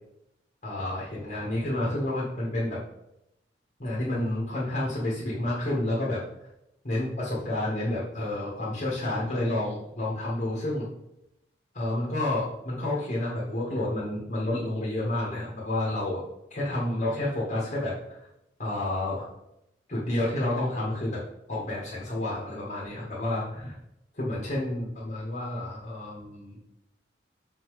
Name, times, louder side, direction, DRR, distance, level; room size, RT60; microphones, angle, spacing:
voice 1, 0.6-2.8 3.8-6.2 6.8-10.9 11.7-16.2 16.5-17.9 18.6-19.3 19.9-21.2 21.5-23.8 24.1-26.6, left 1 dB, 45° left, -6 dB, 1.8 m, -30 dB
6.5 x 4.0 x 4.9 m, 0.85 s
head